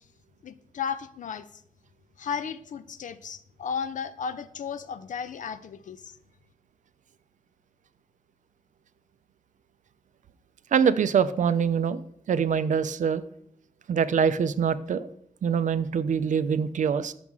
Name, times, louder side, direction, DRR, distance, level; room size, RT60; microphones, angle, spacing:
voice 1, 0.4-1.4 2.2-6.1, left 7 dB, 65° left, 13 dB, 0.4 m, -34 dB
voice 2, 10.7-12.0 12.3-13.2 13.9-15.1 15.4-17.1, right 7 dB, 65° right, 13 dB, 0.4 m, -24 dB
6.0 x 4.7 x 5.5 m, 0.70 s
cardioid pair, 90°, 14 cm